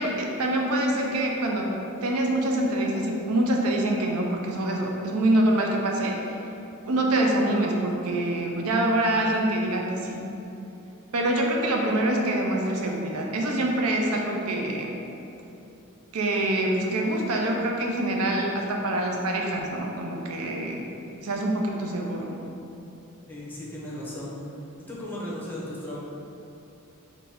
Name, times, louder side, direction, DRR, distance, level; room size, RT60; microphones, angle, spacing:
voice 1, 0.0-1.7 2.0-6.2 6.9-10.2 11.1-14.9 16.1-20.8 21.2-22.4, right 1 dB, 75° right, 0 dB, 0.5 m, -25 dB
voice 2, 23.3-24.3 24.9-26.0, left 1 dB, 10° left, -6 dB, 0.6 m, -36 dB
4.2 x 2.6 x 3.4 m, 2.9 s
head